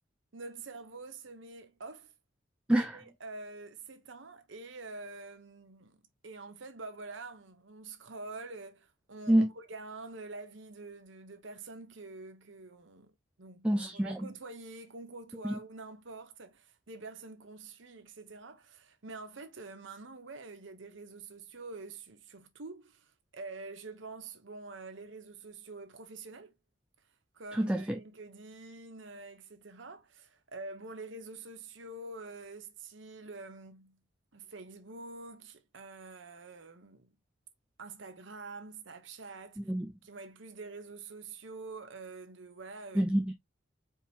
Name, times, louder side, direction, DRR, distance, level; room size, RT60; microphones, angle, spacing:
voice 1, 0.3-2.1 2.7-6.0 6.2-13.1 13.4-26.5 27.3-34.0 34.3-37.1 37.8-39.6 40.0-43.0, right 3 dB, 65° right, 0.9 m, -46 dB
voice 2, 13.6-14.3 15.4-15.6 27.5-28.0 39.6-39.9 42.9-43.3, right 1 dB, 5° right, 0.4 m, -27 dB
4.6 x 3.7 x 2.8 m
head